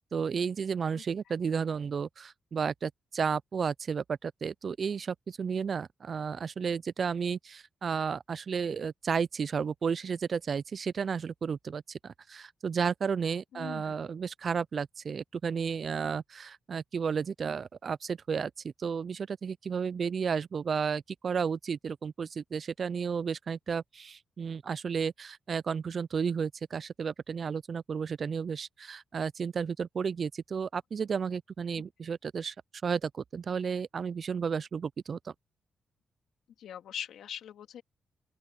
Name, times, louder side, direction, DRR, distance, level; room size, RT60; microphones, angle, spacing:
voice 1, 0.0-18.5 18.8-32.5 32.8-35.3, right 6 dB, 60° right, 0.4 m, -32 dB
voice 2, 13.5-14.0 36.6-37.8, left 10 dB, 85° left, 3.2 m, -41 dB
open air
cardioid pair, 65°, 0 cm